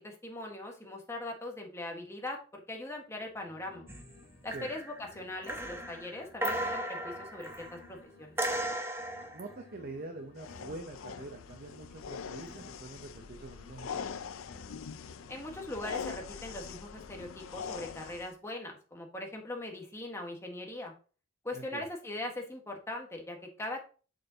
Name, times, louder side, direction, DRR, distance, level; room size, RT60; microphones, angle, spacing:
voice 1, 0.0-3.8 4.4-8.4 15.3-20.9 21.4-23.8, left 1 dB, 15° left, 1 dB, 1.5 m, -41 dB
sound 1, 3.1-4.7 5.0-8.7 9.0-12.7 13.0-16.7 17.0-18.4, left 3 dB, 60° left, 1.9 m, -56 dB
sound 2, 3.9-4.2 4.5-5.0 5.4-7.9 8.4-9.5 12.5-12.7, right 1 dB, 10° right, 0.8 m, -36 dB
voice 2, 9.3-14.1 21.5-21.9, right 2 dB, 45° right, 5 dB, 0.7 m, -45 dB
sound 3, 10.4-18.3, left 6 dB, 85° left, 0.5 m, -43 dB
6.6 x 6.6 x 2.8 m, 0.37 s
head